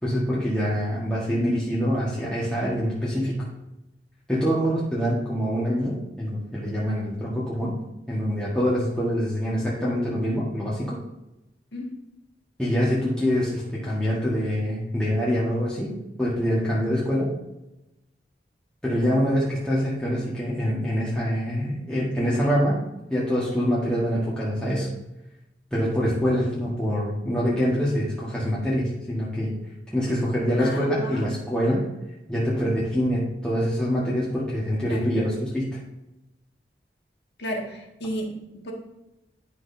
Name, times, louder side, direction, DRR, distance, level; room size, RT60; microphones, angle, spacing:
voice 1, 0.0-3.5 4.3-7.7 8.1-11.0 12.6-17.4 18.8-22.8 23.1-24.9 25.7-29.5 29.9-31.9 32.3-35.8, equal, 5° left, -8 dB, 1.5 m, -25 dB
voice 2, 30.6-31.3 34.9-35.1 37.4-38.3 38.6-38.7, equal, 80° left, 0 dB, 1.8 m, -33 dB
11.0 x 6.1 x 2.7 m, 0.91 s
head